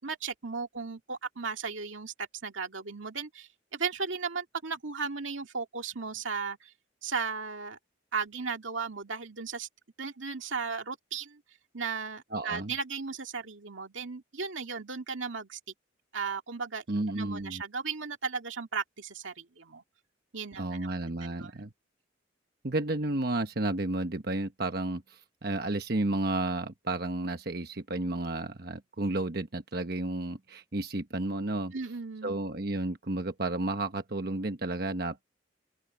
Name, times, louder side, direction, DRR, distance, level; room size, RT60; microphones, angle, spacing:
voice 1, 0.0-6.7 7.0-7.8 8.1-9.7 10.0-11.4 11.7-15.6 16.1-16.8 17.1-19.8 20.3-20.9 21.2-21.7 31.7-32.4, right 5 dB, 85° right, 2.1 m, -36 dB
voice 2, 12.3-12.7 16.9-17.6 20.6-21.7 22.6-31.7 32.2-35.2, right 2 dB, 55° right, 1.1 m, -32 dB
open air
head